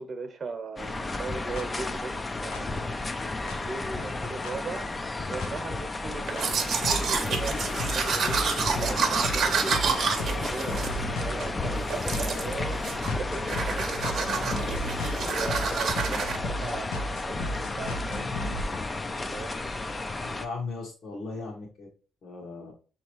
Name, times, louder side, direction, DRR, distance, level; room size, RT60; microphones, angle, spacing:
voice 1, 0.0-2.1 2.4-3.1 3.5-4.9 5.3-12.8 13.2-14.3 15.2-18.7 19.3-19.6, right 3 dB, 40° right, 0.9 m, -39 dB
sound 1, 0.8-20.5, left 2 dB, 25° left, 0.4 m, -33 dB
sound 2, 1.6-1.7 2.5-2.6 3.5-3.6 4.4-4.5 5.4-5.5 6.4-6.5 6.8-18.6, left 1 dB, 90° left, 0.7 m, -35 dB
Domestic sounds home sounds, 6.3-11.5 11.9-12.5 12.8-13.2 13.5-16.4, right 6 dB, 65° right, 0.7 m, -29 dB
voice 2, 20.2-21.9 22.2-22.7, left 3 dB, 60° left, 1.2 m, -37 dB
5.9 x 2.9 x 3.0 m
cardioid pair, 90°, 0 cm